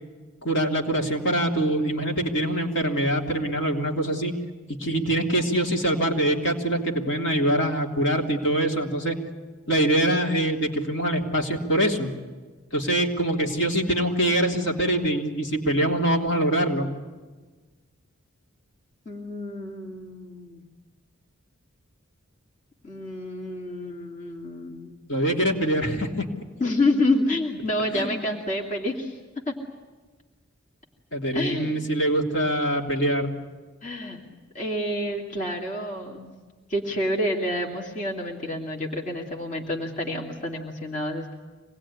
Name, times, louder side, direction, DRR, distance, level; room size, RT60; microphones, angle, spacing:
voice 1, 0.4-4.3 4.8-9.2 9.7-12.1 12.7-16.9 25.1-26.3 27.9-28.2 31.1-33.3, right 1 dB, 55° left, 1 dB, 3.3 m, -24 dB
voice 2, 19.1-20.6 22.8-25.0 26.6-29.2 29.5-29.6 31.3-31.7 33.8-34.2 34.5-36.3 36.7-41.4, left 1 dB, 35° left, 0 dB, 2.8 m, -28 dB
26.0 x 20.0 x 10.0 m, 1.3 s
head